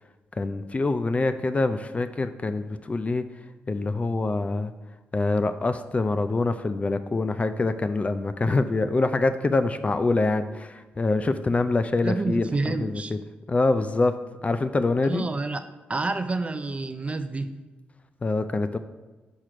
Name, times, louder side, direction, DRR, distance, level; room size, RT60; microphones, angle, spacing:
voice 1, 0.4-3.2 3.7-4.7 5.1-13.2 13.5-14.1 14.4-15.2 18.2-18.8, left 3 dB, 35° left, 10 dB, 0.4 m, -25 dB
voice 2, 12.0-13.1 15.0-15.6 15.9-17.6, right 3 dB, 30° right, 9 dB, 0.5 m, -28 dB
4.8 x 4.5 x 4.9 m, 1.2 s
supercardioid pair, 55°, 4 cm